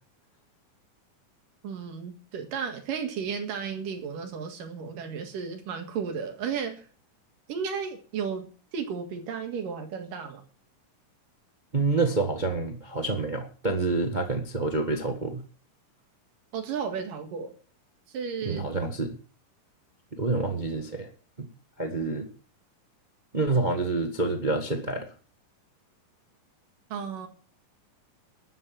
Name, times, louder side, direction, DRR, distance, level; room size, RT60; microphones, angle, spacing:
voice 1, 1.6-6.9 7.5-8.5 8.7-10.4 16.5-17.5 18.1-18.7 26.9-27.3, right 6 dB, 75° right, 5 dB, 3.5 m, -33 dB
voice 2, 11.7-15.4 18.4-19.1 20.1-21.1 21.4-21.5 21.8-22.3 23.3-25.1, right 3 dB, 50° right, 4 dB, 0.5 m, -27 dB
12.5 x 8.4 x 7.6 m, 0.40 s
omnidirectional pair, 3.9 m